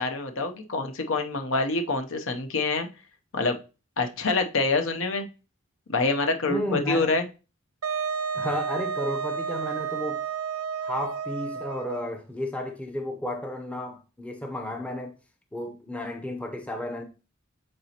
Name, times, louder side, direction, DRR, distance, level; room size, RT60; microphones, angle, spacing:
voice 1, 0.0-2.9 3.3-3.6 4.0-5.3 5.9-7.2, left 3 dB, 60° left, 0.7 m, -26 dB
voice 2, 6.5-7.1 8.3-10.2 10.8-15.2 15.5-17.0, left 1 dB, 5° left, 0.7 m, -33 dB
Wind instrument woodwind instrument, 7.8-12.2, right 6 dB, 85° right, 0.5 m, -31 dB
8.6 x 4.0 x 2.9 m
head